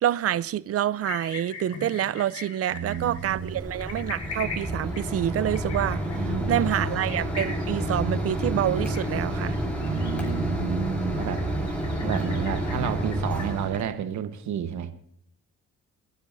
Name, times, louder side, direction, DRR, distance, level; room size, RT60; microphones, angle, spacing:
voice 1, 0.0-9.6, right 11 dB, 50° right, 0.5 m, -27 dB
sound 1, 1.0-13.7, left 4 dB, 65° left, 4.4 m, -42 dB
voice 2, 2.7-3.5 6.1-7.0 9.8-11.4 12.0-14.9, right 8 dB, 70° right, 1.2 m, -31 dB
Mechanisms, 2.8-13.8, right 1 dB, 5° left, 4.6 m, -29 dB
28.5 x 10.0 x 2.7 m
cardioid pair, 90°, 30 cm